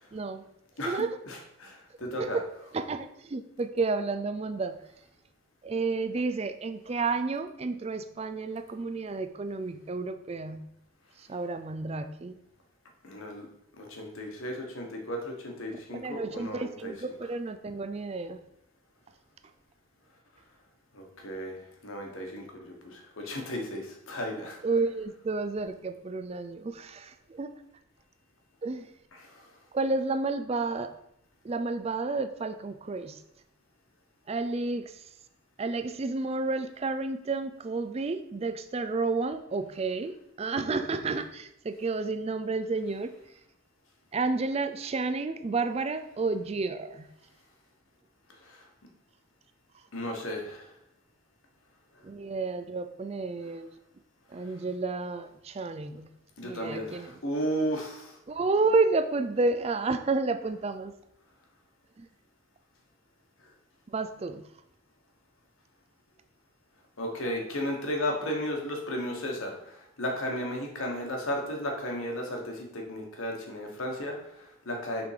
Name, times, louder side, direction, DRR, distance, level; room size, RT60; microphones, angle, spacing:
voice 1, 0.1-0.4 0.8-1.2 2.2-2.5 2.7-4.8 5.6-10.7 11.2-12.4 15.7-18.4 24.6-27.5 28.6-28.9 29.7-30.9 31.4-33.2 34.3-35.1 35.6-43.1 44.1-47.1 52.0-53.7 54.3-56.1 56.4-57.2 58.3-60.9 62.0-62.1 63.9-64.4, right 3 dB, 30° right, 9 dB, 0.3 m, -31 dB
voice 2, 0.8-2.4 13.0-13.5 13.8-16.9 20.9-24.6 29.1-29.5 48.4-48.6 49.9-50.7 56.4-58.2 67.0-75.1, equal, 75° left, 1 dB, 1.4 m, -34 dB
5.9 x 3.7 x 4.8 m, 0.80 s
head